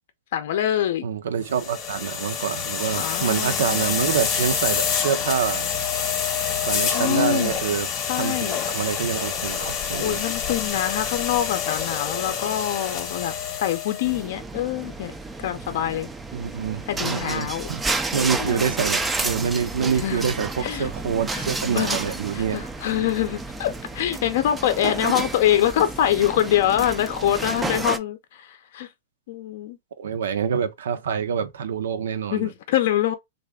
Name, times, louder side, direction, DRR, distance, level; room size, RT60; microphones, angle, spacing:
voice 1, 0.3-1.0 2.9-4.1 6.9-7.6 8.1-8.6 10.0-16.1 16.9-17.7 18.3-18.8 20.0-20.3 20.6-20.9 21.3-21.4 21.7-22.0 22.3-28.9 29.3-29.8 32.3-33.1, left 11 dB, 55° left, 0.5 m, -25 dB
voice 2, 1.0-5.7 6.7-7.9 8.2-10.2 16.3-17.8 18.1-22.7 24.8-25.1 30.0-32.5, right 7 dB, 85° right, 0.7 m, -26 dB
sound 1, 1.5-14.2, left 7 dB, 25° left, 0.9 m, -27 dB
sound 2, 14.0-28.0, right 3 dB, 10° right, 0.3 m, -31 dB
3.3 x 2.5 x 3.4 m
supercardioid pair, 160°, 0 cm